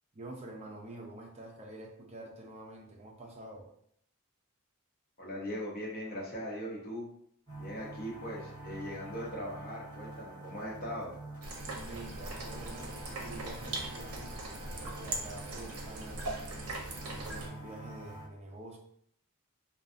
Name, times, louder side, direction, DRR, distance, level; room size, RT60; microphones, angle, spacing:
voice 1, 0.1-3.7 11.6-16.8 17.0-18.8, right 2 dB, 30° right, 0 dB, 0.5 m, -47 dB
voice 2, 5.2-7.1 7.6-11.1, equal, 45° left, -3 dB, 0.7 m, -40 dB
sound 1, 7.5-18.3, right 1 dB, 20° left, 1.4 m, -47 dB
sound 2, 11.4-17.5, right 2 dB, 80° right, 0.6 m, -40 dB
2.6 x 2.3 x 2.5 m, 0.68 s
head